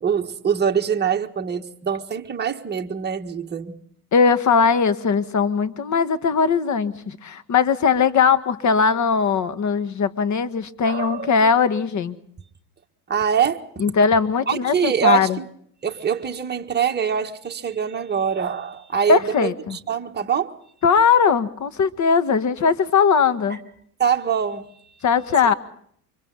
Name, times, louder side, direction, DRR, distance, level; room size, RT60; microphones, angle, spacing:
voice 1, 0.0-3.8 10.8-11.3 13.1-13.6 14.5-15.5 15.8-20.6 23.5-23.6 24.0-25.0, right 7 dB, 20° right, 1.5 m, -24 dB
voice 2, 4.1-12.2 13.8-15.4 19.1-19.8 20.8-23.6 25.0-25.5, left 5 dB, 35° left, 1.7 m, -19 dB
29.0 x 25.0 x 4.0 m
hypercardioid pair, 85°, 47 cm